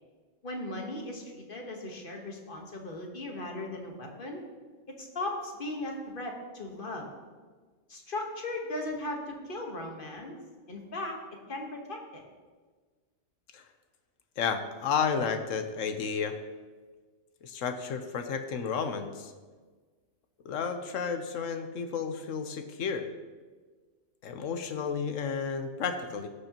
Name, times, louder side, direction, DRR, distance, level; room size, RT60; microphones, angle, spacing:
voice 1, 0.4-4.4 5.0-7.1 7.9-10.3 10.7-11.1 11.5-12.2, left 2 dB, 45° left, 1 dB, 1.4 m, -37 dB
voice 2, 14.4-16.4 17.4-19.3 20.4-23.1 24.2-26.3, left 6 dB, 80° left, 7 dB, 1.1 m, -32 dB
15.5 x 6.6 x 2.9 m, 1.4 s
omnidirectional pair, 1.3 m